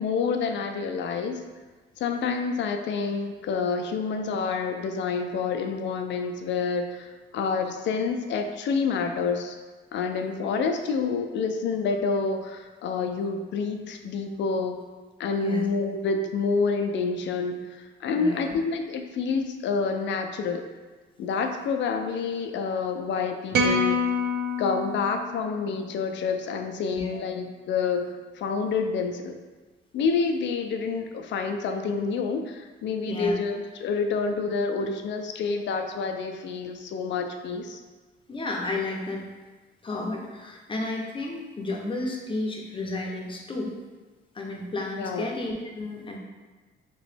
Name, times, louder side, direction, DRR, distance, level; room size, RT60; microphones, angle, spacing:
voice 1, 0.0-1.4 2.0-9.6 9.9-14.8 15.2-20.6 21.2-24.0 24.6-29.4 29.9-37.8 45.0-45.3, left 5 dB, 65° left, 6 dB, 0.4 m, -28 dB
voice 2, 18.1-18.6 26.9-27.2 33.1-33.3 38.3-39.2 39.8-43.7 44.3-46.2, left 2 dB, 25° left, 0 dB, 0.7 m, -32 dB
sound 1, 23.5-25.9, left 2 dB, 55° right, 0.4 m, -27 dB
3.0 x 3.0 x 3.3 m, 1.3 s
cardioid pair, 90°, 20 cm